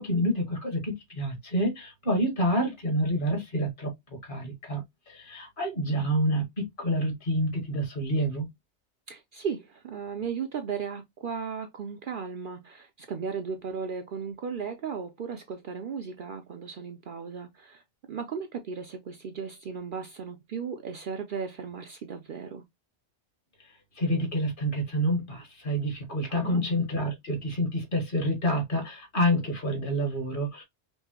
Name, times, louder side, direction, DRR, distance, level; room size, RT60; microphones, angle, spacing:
voice 1, 0.0-8.5 23.9-30.6, equal, 50° left, 1.5 m, -28 dB
voice 2, 9.1-17.8 18.1-22.6 26.3-26.6, right 6 dB, 55° right, 0.6 m, -36 dB
5.3 x 2.1 x 2.8 m
omnidirectional pair, 1.2 m